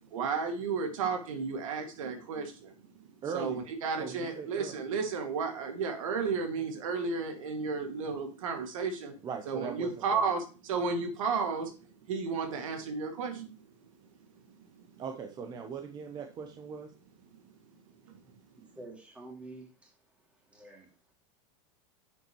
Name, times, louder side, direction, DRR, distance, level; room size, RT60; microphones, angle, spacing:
voice 1, 0.1-2.7 3.3-9.2 9.5-11.7 12.0-13.6 14.9-15.0 18.1-18.2, right 5 dB, 85° right, 5 dB, 2.1 m, -33 dB
voice 2, 3.2-3.6 4.0-4.8 9.2-10.3 15.0-16.9, right 6 dB, 25° right, 4 dB, 0.8 m, -39 dB
voice 3, 18.8-19.9 20.5-20.9, right 2 dB, 5° right, 0 dB, 2.4 m, -48 dB
9.9 x 6.9 x 3.1 m, 0.33 s
supercardioid pair, 150°, 17 cm